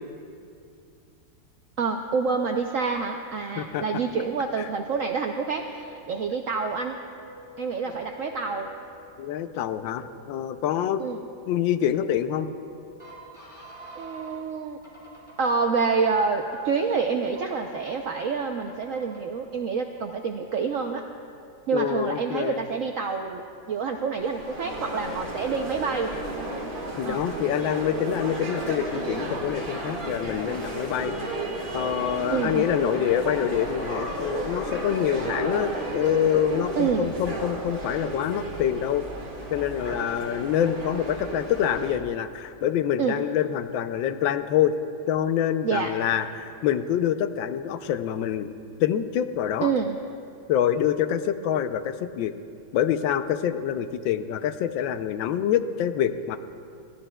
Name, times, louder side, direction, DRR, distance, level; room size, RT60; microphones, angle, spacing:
voice 1, 1.8-7.0 7.6-8.7 11.0-11.2 13.9-14.8 15.4-21.0 21.7-23.4 23.7-26.1 27.0-27.3 32.3-32.7 36.8-37.1 43.0-43.2 45.6-45.9 49.6-50.0, right 5 dB, 75° right, 3 dB, 0.7 m, -27 dB
sound 1, 5.5-14.4 14.8-15.5 16.0-16.8 17.3-17.9 18.4-19.2, right 1 dB, 15° left, 3.7 m, -48 dB
voice 2, 9.2-11.0 11.5-12.5 21.7-22.6 27.0-31.2 31.7-39.0 39.5-44.8 45.1-48.5 48.8-49.7 50.5-52.3 52.7-56.4, left 10 dB, 85° left, 10 dB, 1.4 m, -26 dB
sound 2, 24.2-42.0, right 1 dB, 30° right, 1.7 m, -33 dB
21.5 x 15.5 x 2.2 m, 2.4 s
omnidirectional pair, 2.0 m